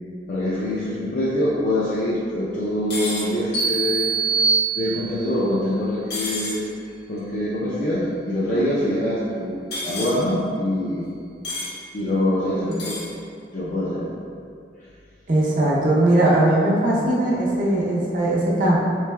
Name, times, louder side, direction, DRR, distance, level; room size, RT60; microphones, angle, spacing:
voice 1, 0.3-4.1 4.7-6.6 7.1-9.5 9.8-11.0 11.9-12.9 13.5-14.1, left 1 dB, 45° left, -9 dB, 0.5 m, -24 dB
sound 1, 2.9-3.3 6.1-6.6 9.7-10.2 11.4-11.7 12.7-13.1, left 2 dB, 65° left, 1.1 m, -29 dB
sound 2, 3.5-5.4, right 5 dB, 85° left, 1.3 m, -23 dB
voice 2, 15.3-18.8, right 1 dB, 50° right, -5 dB, 0.6 m, -19 dB
3.7 x 3.2 x 2.2 m, 2.4 s
head